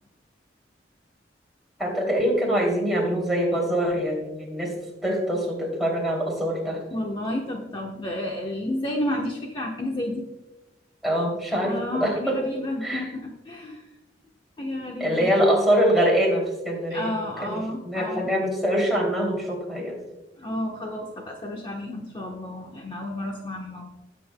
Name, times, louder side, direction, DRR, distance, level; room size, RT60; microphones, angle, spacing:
voice 1, 1.8-6.8 11.0-12.4 12.8-13.0 15.0-17.1 17.4-20.0, equal, ahead, -3 dB, 2.7 m, -24 dB
voice 2, 6.9-10.3 11.6-13.9 14.6-15.3 16.9-18.3 20.4-23.9, left 1 dB, 30° left, 0 dB, 1.0 m, -31 dB
18.5 x 7.8 x 2.2 m, 1.0 s
head